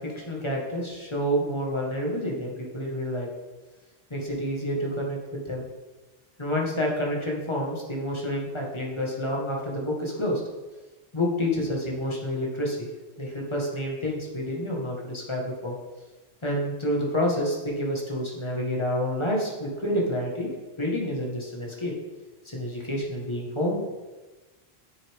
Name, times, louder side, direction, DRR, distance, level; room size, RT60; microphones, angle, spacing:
voice 1, 0.0-3.3 4.1-5.7 6.4-10.4 11.1-12.9 13.2-15.8 16.4-20.5 20.8-21.9 22.5-23.8, equal, 25° left, -2 dB, 1.6 m, -28 dB
9.1 x 6.6 x 3.6 m, 1.2 s
omnidirectional pair, 1.1 m